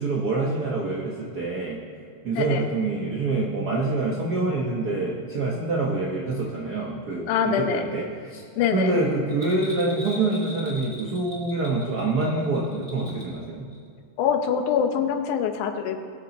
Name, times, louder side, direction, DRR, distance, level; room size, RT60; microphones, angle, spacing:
voice 1, 0.0-1.8 2.2-8.4 8.7-13.7, right 3 dB, 75° right, -2 dB, 0.9 m, -26 dB
voice 2, 2.4-2.7 7.3-7.9 8.6-9.0 14.2-16.0, left 8 dB, 80° left, 6 dB, 2.3 m, -24 dB
Bell, 9.3-13.4 13.7-13.8, left 1 dB, 20° right, 1.9 m, -41 dB
20.5 x 7.0 x 4.2 m, 2.1 s
omnidirectional pair, 3.5 m